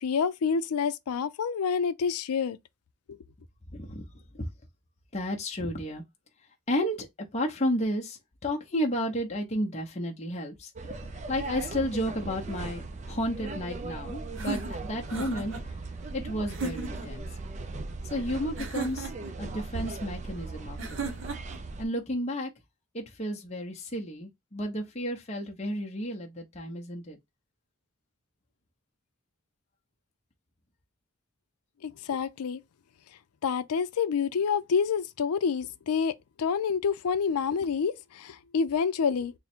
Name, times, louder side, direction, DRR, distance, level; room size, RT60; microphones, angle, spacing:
voice 1, 0.0-2.6 3.1-3.2 31.8-32.6 33.4-36.1 36.4-39.3, left 6 dB, 90° left, 0.4 m, -28 dB
voice 2, 3.7-4.1 4.3-4.5 5.1-6.0 6.7-7.1 7.3-15.5 16.1-17.3 18.1-19.1 19.4-21.2 21.8-22.5 22.9-27.2, equal, 30° left, 0.7 m, -32 dB
sound 1, 10.8-21.9, right 3 dB, 30° right, 0.4 m, -38 dB
sound 2, 14.4-15.6 16.5-17.1 18.6-19.3 20.8-21.6, right 4 dB, 60° right, 0.8 m, -36 dB
3.6 x 2.1 x 4.3 m
head